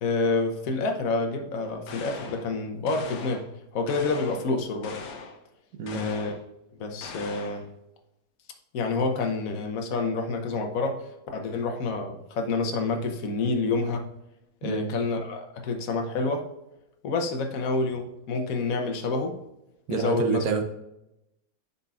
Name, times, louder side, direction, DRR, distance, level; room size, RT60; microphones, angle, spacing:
voice 1, 0.0-3.4 3.7-5.0 5.9-6.4 6.8-7.7 8.7-14.1 14.6-16.5 17.0-19.4 19.9-20.4, left 3 dB, 60° left, 4 dB, 1.2 m, -28 dB
sound 1, 1.9-2.5 2.9-3.5 3.9-4.5 4.8-5.4 5.9-6.4 7.0-7.7, left 4 dB, 85° left, 1.4 m, -41 dB
voice 2, 19.9-20.6, right 5 dB, 65° right, 5 dB, 1.2 m, -27 dB
8.2 x 5.4 x 2.4 m, 0.89 s
omnidirectional pair, 1.8 m